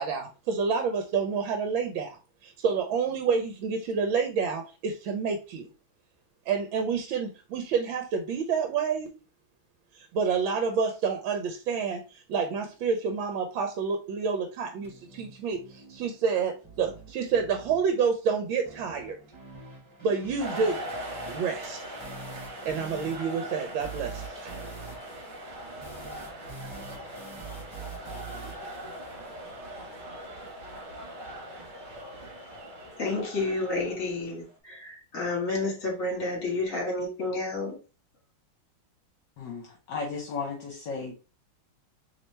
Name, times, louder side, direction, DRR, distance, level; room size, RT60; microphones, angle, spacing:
voice 1, 0.0-5.7 6.5-9.1 9.9-19.2 20.0-20.8 21.3-21.8 22.6-24.5, right 5 dB, 80° right, 1.4 m, -29 dB
sound 1, 14.8-29.8, right 4 dB, 15° right, 1.8 m, -46 dB
sound 2, 20.4-34.6, right 1 dB, 40° right, 1.6 m, -41 dB
voice 2, 33.0-37.8, left 2 dB, 45° left, 2.0 m, -30 dB
voice 3, 39.4-41.2, left 4 dB, 65° left, 1.5 m, -35 dB
4.2 x 3.4 x 3.1 m
omnidirectional pair, 2.2 m